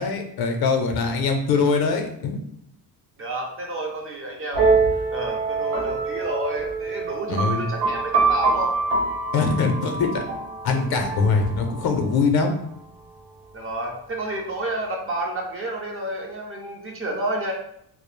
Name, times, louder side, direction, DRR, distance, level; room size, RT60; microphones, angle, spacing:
voice 1, 0.0-2.4 7.3-7.6 9.3-10.2 10.6-12.5, left 4 dB, 60° left, 5 dB, 0.5 m, -22 dB
voice 2, 3.2-8.7 13.5-17.5, right 1 dB, 35° right, 1 dB, 0.4 m, -30 dB
sound 1, 4.5-12.1, right 4 dB, 75° right, 0.9 m, -25 dB
2.3 x 2.0 x 3.0 m, 0.73 s
cardioid pair, 130°, 43 cm